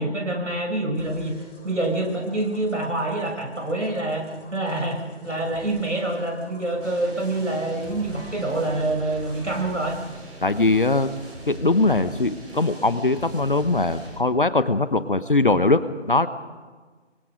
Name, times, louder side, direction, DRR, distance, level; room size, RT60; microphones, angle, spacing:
voice 1, 0.0-1.3 1.6-4.2 4.5-10.0, right 2 dB, 75° right, 2 dB, 6.7 m, -26 dB
sound 1, 0.9-10.1, left 1 dB, 10° left, 5.8 m, -48 dB
sound 2, 6.8-14.2, right 1 dB, 50° right, 7.7 m, -40 dB
voice 2, 10.4-11.1 11.5-16.3, left 2 dB, 45° left, 13 dB, 1.0 m, -21 dB
28.5 x 24.0 x 5.0 m, 1.4 s
figure-of-eight pair, 165°, 37 cm